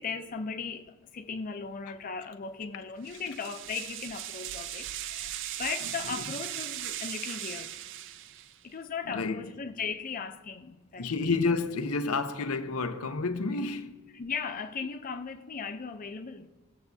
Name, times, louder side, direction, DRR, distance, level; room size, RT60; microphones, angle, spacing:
voice 1, 0.0-7.8 8.6-11.1 14.1-16.5, left 5 dB, 40° left, 0.5 m, -37 dB
sound 1, 3.0-8.6, right 12 dB, 60° right, 0.4 m, -38 dB
voice 2, 9.1-9.5 11.0-14.0, left 3 dB, 90° left, 0.7 m, -30 dB
18.5 x 7.0 x 2.7 m
head